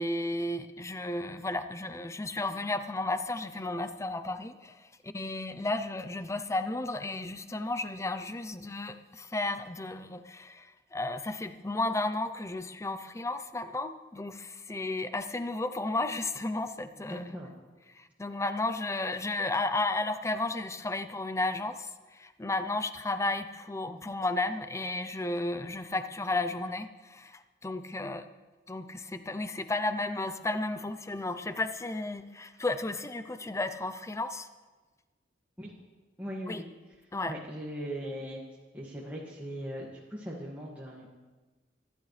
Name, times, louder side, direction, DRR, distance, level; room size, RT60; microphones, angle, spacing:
voice 1, 0.0-17.2 17.9-28.2 28.7-34.5 36.5-36.6 37.1-37.4, left 2 dB, 15° left, 10 dB, 0.6 m, -33 dB
voice 2, 17.1-17.5 35.6-35.8 36.2-36.6 37.2-38.4 38.7-41.1, equal, 10° right, -6 dB, 2.0 m, -39 dB
26.0 x 12.0 x 3.3 m, 1.3 s
head